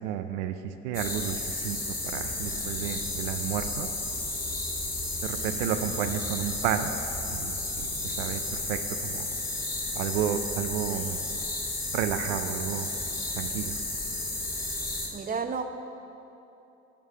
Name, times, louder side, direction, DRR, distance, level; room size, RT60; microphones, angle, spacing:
voice 1, 0.0-3.9 5.2-6.9 7.3-9.3 10.0-11.2 11.9-12.9 13.4-13.7, right 10 dB, 85° right, 8 dB, 0.5 m, -32 dB
sound 1, 0.9-15.1, left 2 dB, 25° left, 2.2 m, -33 dB
sound 2, 2.0-8.5, left 1 dB, 75° left, 1.3 m, -47 dB
voice 2, 15.1-15.7, right 5 dB, 25° right, 7 dB, 0.8 m, -31 dB
13.0 x 4.8 x 5.6 m, 2.9 s
hypercardioid pair, 60°, 34 cm